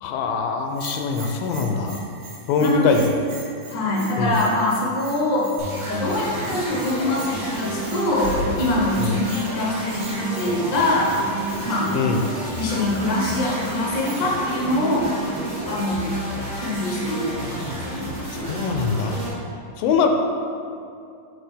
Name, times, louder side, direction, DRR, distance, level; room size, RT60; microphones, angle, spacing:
voice 1, 0.0-2.1 2.5-3.2 4.2-4.4 9.0-9.2 11.9-12.2 18.5-19.2 19.8-20.1, left 4 dB, 85° left, 4 dB, 2.3 m, -22 dB
Bell, 0.7-14.5, right 3 dB, 70° right, 1.4 m, -44 dB
voice 2, 2.6-3.0 3.7-5.6 5.8-11.1 11.6-12.0 12.6-15.1 15.6-16.1 16.6-18.0, left 1 dB, 60° left, -3 dB, 1.1 m, -24 dB
sound 1, 5.6-19.3, right 1 dB, 35° right, 0.6 m, -31 dB
sound 2, 8.0-9.6, equal, 85° right, 2.5 m, -32 dB
7.2 x 3.7 x 5.0 m, 2.4 s
omnidirectional pair, 3.9 m